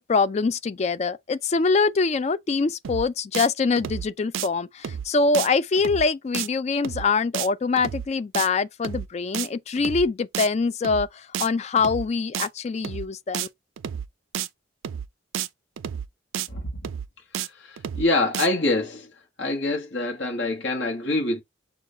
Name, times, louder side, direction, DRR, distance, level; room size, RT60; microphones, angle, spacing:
voice 1, 0.0-13.5, left 4 dB, 35° left, 0.3 m, -24 dB
sound 1, 2.8-3.1 3.3-3.5 3.8-4.1 4.3-4.5 4.8-5.1 5.3-5.5 5.8-6.1 6.3-6.5 6.8-7.1 7.3-7.5 7.8-8.1 8.3-8.5 8.8-9.1 9.3-9.5 9.8-10.1 10.3-10.5 10.8-11.1 11.3-11.5 11.8-12.1 12.3-12.5 12.8-13.1 13.3-13.5 13.8-14.1 14.3-14.5 14.8-15.1 15.3-15.5 15.8-16.1 16.3-16.5 16.8-17.1 17.3-17.5 17.8-18.1 18.3-18.5, right 9 dB, 80° right, 0.4 m, -31 dB
voice 2, 17.4-19.1 19.4-21.4, left 2 dB, 65° left, 1.3 m, -25 dB
6.1 x 2.4 x 3.6 m
head